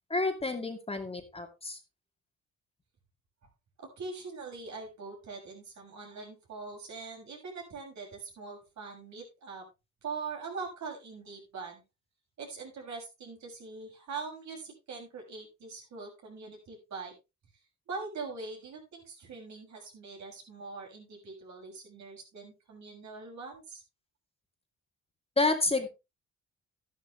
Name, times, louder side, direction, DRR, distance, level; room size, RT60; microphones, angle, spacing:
voice 1, 0.1-1.8 25.4-25.9, left 3 dB, 20° left, 4 dB, 2.3 m, -29 dB
voice 2, 3.8-9.6 10.0-11.8 12.4-17.1 17.9-23.8, right 4 dB, 65° right, 0 dB, 6.7 m, -42 dB
12.0 x 11.0 x 3.3 m, 0.26 s
cardioid pair, 90°, 30 cm